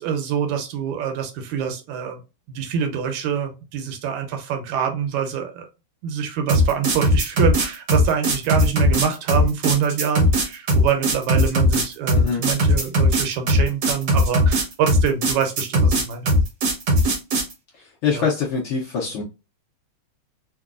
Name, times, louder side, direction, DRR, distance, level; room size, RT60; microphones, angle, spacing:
voice 1, 0.0-2.2 2.5-5.7 6.0-16.3 18.1-18.3, right 7 dB, 85° right, 5 dB, 2.1 m, -25 dB
sound 1, 6.5-17.5, equal, 65° right, 1.1 m, -18 dB
voice 2, 18.0-19.2, left 6 dB, 80° left, -3 dB, 1.2 m, -23 dB
4.6 x 2.2 x 2.4 m, 0.28 s
omnidirectional pair, 3.3 m